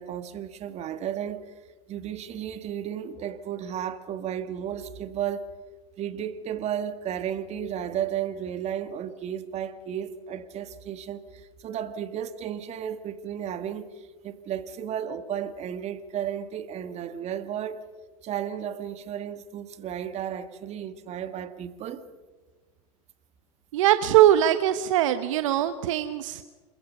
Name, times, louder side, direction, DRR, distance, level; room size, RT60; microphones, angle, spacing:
voice 1, 0.0-1.4 1.9-5.5 6.0-17.8 18.2-22.0, right 9 dB, 40° right, 1.9 m, -33 dB
voice 2, 23.7-26.4, right 12 dB, 65° right, 1.1 m, -21 dB
28.0 x 22.0 x 5.6 m
hypercardioid pair, 90°, 17 cm